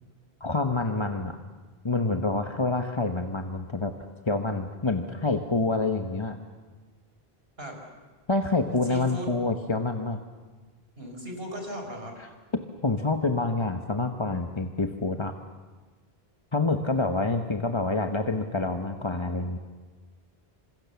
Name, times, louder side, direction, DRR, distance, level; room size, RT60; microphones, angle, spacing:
voice 1, 0.4-1.4 1.8-3.9 4.3-6.4 8.3-10.2 12.8-15.3 16.5-19.6, left 3 dB, 30° left, 6 dB, 1.1 m, -27 dB
voice 2, 8.8-9.3 11.0-12.2, equal, 70° right, 2 dB, 5.3 m, -37 dB
28.5 x 26.0 x 7.1 m, 1.3 s
omnidirectional pair, 1.0 m